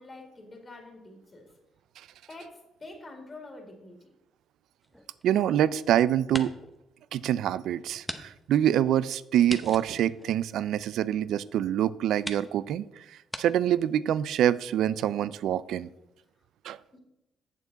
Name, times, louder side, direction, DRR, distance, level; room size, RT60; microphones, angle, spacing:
voice 1, 0.0-1.6 2.3-4.1 16.9-17.0, left 2 dB, 30° left, 2 dB, 2.0 m, -46 dB
sound 1, 4.8-5.8 6.2-6.8 7.2-7.3 8.0-8.2 8.5-8.6 9.5-11.0 11.7-11.8 12.2-12.5 13.3-13.4, equal, ahead, 0.8 m, -39 dB
voice 2, 5.2-6.5 7.1-12.8 13.4-15.9 16.6-16.8, right 11 dB, 80° right, 18 dB, 0.3 m, -25 dB
8.2 x 6.9 x 4.0 m, 0.93 s
cardioid pair, 90°, 0 cm